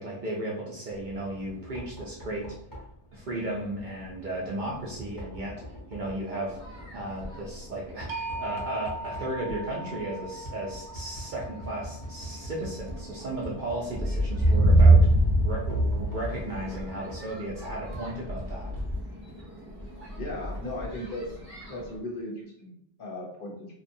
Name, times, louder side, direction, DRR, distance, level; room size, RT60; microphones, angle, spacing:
voice 1, 0.0-2.5 3.1-6.6 6.9-15.1 15.4-18.7, right 1 dB, 55° right, -4 dB, 0.6 m, -35 dB
Knock, 0.9-19.3, equal, 25° left, 0.6 m, -45 dB
sound 1, 6.5-7.5 8.2-8.3 8.8-9.1 9.4-10.0 10.7-10.9 11.3-22.0, right 1 dB, 10° right, 0.8 m, -26 dB
sound 2, 8.1-14.1, right 1 dB, 85° right, 0.9 m, -40 dB
voice 2, 20.1-21.4 21.7-23.7, left 1 dB, 55° left, -2 dB, 0.8 m, -37 dB
2.7 x 2.2 x 2.6 m, 0.71 s
omnidirectional pair, 1.2 m